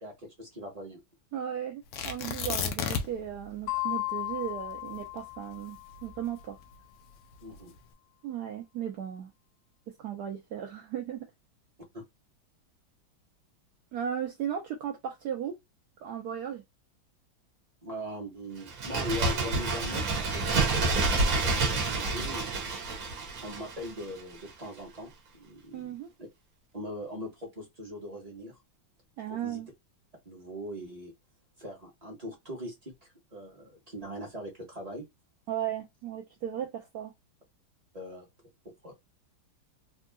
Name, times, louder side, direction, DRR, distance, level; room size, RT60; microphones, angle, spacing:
voice 1, 0.4-1.0 7.4-7.8 11.9-12.0 17.8-22.7 23.4-25.9 26.2-26.3 26.7-28.6 29.3-29.6 30.2-31.1 31.6-35.1 37.9-38.3 38.6-38.9, equal, 25° right, 0.9 m, -41 dB
voice 2, 1.3-6.6 8.2-9.3 9.9-11.3 13.9-15.6 16.0-16.6 25.7-26.1 29.2-29.7 35.5-37.1, right 9 dB, 75° right, 0.9 m, -36 dB
Tearing, 1.9-3.3 3.6-3.7 4.2-6.6 7.3-7.8, left 7 dB, 70° left, 1.0 m, -33 dB
sound 1, 3.7-6.2, left 21 dB, 90° left, 1.5 m, -35 dB
Bird, 18.6-24.2 24.5-24.6, right 3 dB, 55° right, 1.1 m, -28 dB
3.5 x 2.5 x 2.3 m
omnidirectional pair, 2.2 m